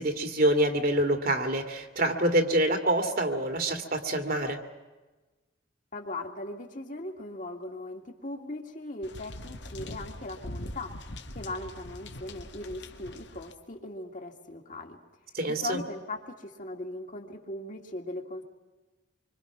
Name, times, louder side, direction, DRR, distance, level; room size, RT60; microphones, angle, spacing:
voice 1, 0.0-4.6 15.3-15.8, right 1 dB, 55° right, 6 dB, 2.4 m, -26 dB
voice 2, 5.9-10.9 11.3-15.0 15.4-18.4, left 2 dB, 45° left, 2 dB, 2.4 m, -39 dB
sound 1, 9.0-13.5, left 1 dB, 70° left, 1.7 m, -42 dB
26.0 x 25.0 x 6.1 m, 1.2 s
head